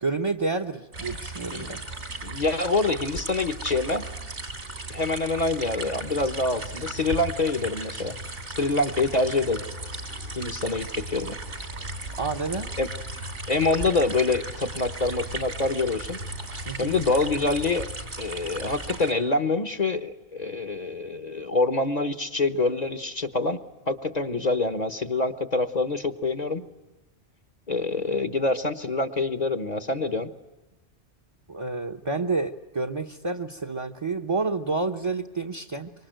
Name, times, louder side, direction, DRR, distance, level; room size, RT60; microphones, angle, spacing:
voice 1, 0.0-1.8 12.2-12.7 16.7-17.0 31.5-35.9, right 3 dB, 30° right, 8 dB, 0.9 m, -29 dB
sound 1, 0.9-19.1, right 2 dB, 75° right, 3.7 m, -36 dB
voice 2, 2.2-4.0 4.9-8.2 8.6-9.6 10.4-11.4 12.8-12.9 13.5-16.2 16.8-17.9 18.2-23.6 23.9-26.6 27.7-30.3, left 3 dB, 40° left, 11 dB, 1.2 m, -26 dB
25.5 x 24.5 x 9.1 m, 1.1 s
omnidirectional pair, 1.2 m